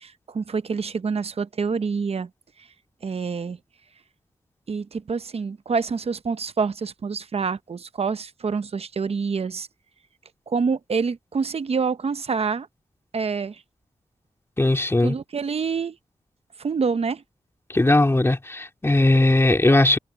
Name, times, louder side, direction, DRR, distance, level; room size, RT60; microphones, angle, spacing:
voice 1, 0.0-2.3 3.0-3.6 4.7-9.7 10.5-12.7 13.1-13.6 15.0-16.0 16.6-17.2, right 5 dB, 60° right, 0.8 m, -27 dB
voice 2, 14.6-15.2 17.7-20.0, left 2 dB, 20° left, 2.2 m, -18 dB
wide cardioid pair, 75°, 12 cm